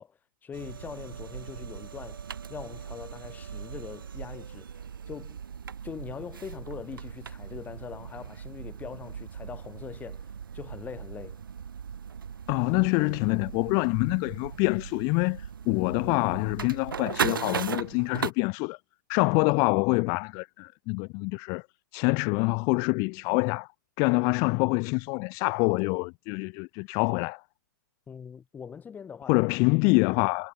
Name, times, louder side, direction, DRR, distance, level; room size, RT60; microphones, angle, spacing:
voice 1, 0.0-4.8 5.1-5.4 5.8-11.4 28.1-29.5, left 7 dB, 15° left, 6.4 m, -42 dB
sound 1, 0.5-18.3, right 7 dB, 85° right, 2.7 m, -38 dB
voice 2, 12.5-18.8 19.1-21.6 21.9-23.7 24.0-27.4 29.3-30.5, left 33 dB, 30° left, 0.4 m, -26 dB
hypercardioid pair, 135°, 11 cm